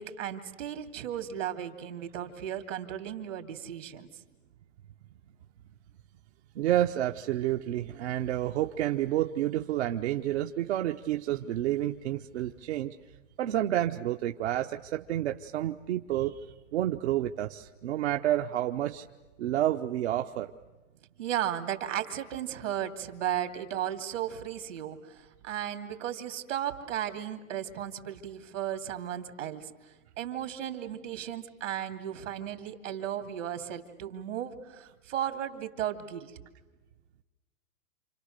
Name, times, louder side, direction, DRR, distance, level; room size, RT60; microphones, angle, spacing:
voice 1, 0.0-4.1 21.2-36.3, right 10 dB, 75° right, 7 dB, 2.8 m, -35 dB
voice 2, 6.5-12.9 13.4-19.0 19.4-20.5, right 13 dB, 60° right, 5 dB, 0.9 m, -29 dB
28.5 x 27.0 x 6.6 m, 1.2 s
hypercardioid pair, 140°, 38 cm